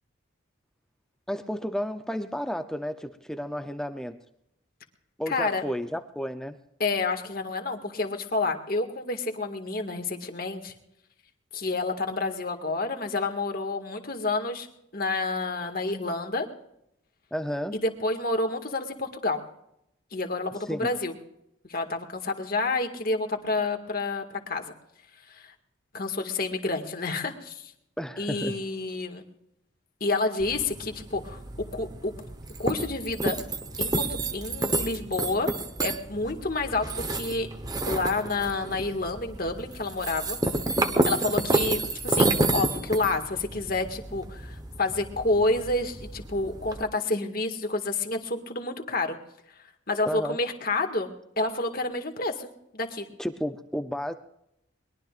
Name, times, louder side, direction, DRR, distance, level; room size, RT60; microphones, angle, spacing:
voice 1, 1.3-4.2 5.2-6.6 17.3-17.8 20.6-20.9 28.0-28.6 50.1-50.4 53.2-54.1, equal, 5° left, 8 dB, 0.6 m, -32 dB
voice 2, 5.3-5.6 6.8-10.7 11.5-14.7 14.9-16.5 17.7-19.4 20.1-21.1 21.7-24.7 25.3-25.5 25.9-27.7 28.2-29.2 30.0-32.1 32.6-33.4 33.8-35.5 35.8-37.5 37.9-40.4 41.1-49.2 49.9-52.5 52.7-53.1, left 3 dB, 45° left, 4 dB, 1.9 m, -29 dB
sound 1, 30.4-46.8, right 2 dB, 20° right, 1.1 m, -30 dB
22.5 x 21.5 x 2.5 m, 0.79 s
head